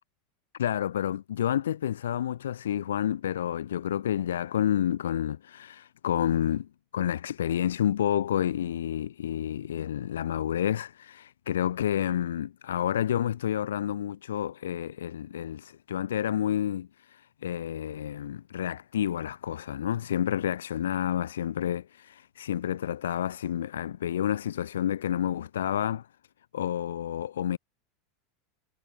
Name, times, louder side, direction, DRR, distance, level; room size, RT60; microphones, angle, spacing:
voice 1, 0.6-26.1 26.5-27.6, left 10 dB, 85° left, 2.5 m, -29 dB
hypercardioid pair, 100°, 0 cm